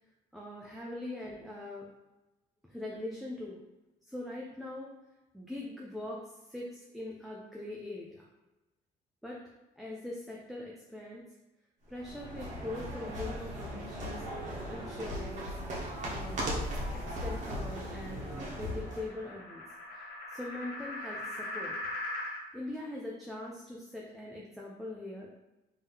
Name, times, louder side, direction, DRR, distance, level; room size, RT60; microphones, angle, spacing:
voice 1, 0.3-1.9 2.6-3.6 4.0-4.9 5.3-8.3 9.2-9.4 9.8-11.2 11.9-14.2 14.7-15.5 16.1-16.5 16.9-19.6 19.9-21.8 22.5-25.3, left 1 dB, ahead, -3 dB, 0.5 m, -42 dB
sound 1, 11.9-19.1, equal, 45° right, 1.2 m, -37 dB
sound 2, 16.0-22.4, left 1 dB, 70° left, 1.0 m, -42 dB
3.6 x 2.8 x 3.5 m, 1.0 s
cardioid pair, 110°, 17 cm